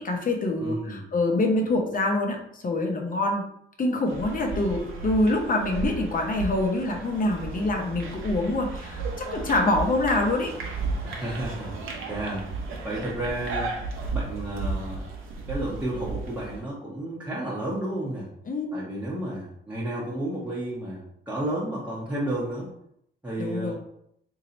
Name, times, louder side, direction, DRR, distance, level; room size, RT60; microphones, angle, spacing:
voice 1, 0.0-3.4 3.8-10.5 18.5-18.7 23.4-23.7, left 2 dB, 40° left, 2 dB, 0.8 m, -25 dB
voice 2, 0.6-1.0 11.0-11.7 12.1-12.4 12.8-13.7 14.1-15.1 15.5-18.3 18.7-22.7 23.2-23.7, right 1 dB, 5° right, -7 dB, 0.9 m, -32 dB
sound 1, 4.1-16.6, right 3 dB, 75° right, 0.8 m, -34 dB
3.1 x 2.7 x 3.9 m, 0.72 s
cardioid pair, 90°, 21 cm